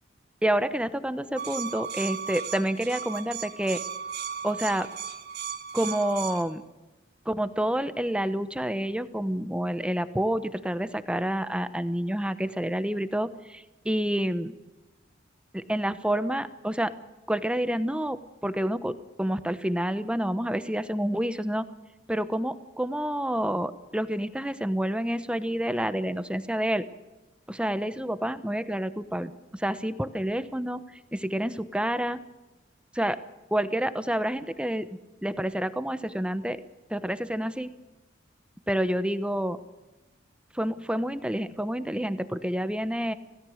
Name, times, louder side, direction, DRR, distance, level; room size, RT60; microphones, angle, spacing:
voice 1, 0.4-3.8 4.4-4.9 5.7-6.6 7.2-14.5 15.5-16.9 17.3-21.7 22.1-26.9 27.5-32.2 32.9-33.2 33.5-36.6 36.9-37.7 38.7-39.6 40.5-43.1, right 1 dB, 5° right, 12 dB, 1.0 m, -28 dB
sound 1, 1.4-6.4, right 7 dB, 60° right, 2.4 m, -36 dB
27.0 x 17.0 x 6.5 m, 1.1 s
head